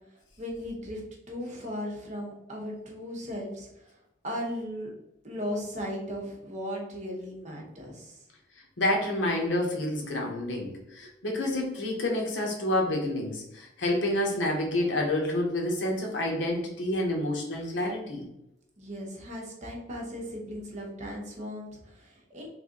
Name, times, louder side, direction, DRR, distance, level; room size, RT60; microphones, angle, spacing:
voice 1, 0.4-1.0 1.3-4.0 4.2-4.9 5.2-8.2 11.0-11.1 18.8-22.5, equal, 40° right, -1 dB, 1.0 m, -37 dB
voice 2, 8.8-18.3, left 1 dB, 85° left, 0 dB, 0.9 m, -28 dB
3.3 x 2.5 x 3.7 m, 0.84 s
head